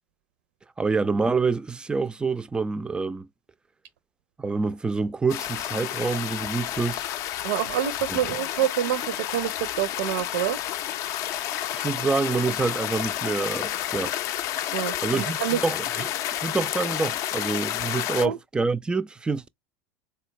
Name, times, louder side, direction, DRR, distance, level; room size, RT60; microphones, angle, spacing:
voice 1, 0.8-3.3 4.4-7.1 8.1-8.2 11.7-14.1 15.0-19.5, right 4 dB, 15° right, 0.3 m, -27 dB
sound 1, 5.3-18.3, left 12 dB, 50° left, 0.4 m, -30 dB
voice 2, 7.4-9.5 9.8-10.6 14.7-15.6 18.2-18.4, right 12 dB, 75° right, 0.5 m, -27 dB
3.9 x 2.2 x 3.0 m
hypercardioid pair, 90°, 7 cm